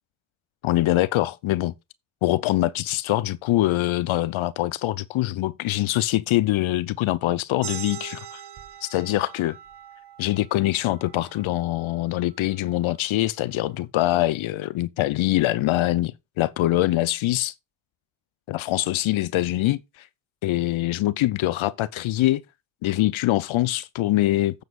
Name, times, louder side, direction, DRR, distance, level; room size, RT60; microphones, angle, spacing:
voice 1, 0.6-1.7 2.2-8.4 8.8-9.6 10.2-17.5 18.5-20.1 20.4-22.4 22.8-24.6, left 16 dB, 70° left, 0.7 m, -24 dB
sound 1, 7.6-12.8, right 9 dB, 50° right, 1.2 m, -42 dB
14.0 x 7.4 x 2.4 m
cardioid pair, 75°, 49 cm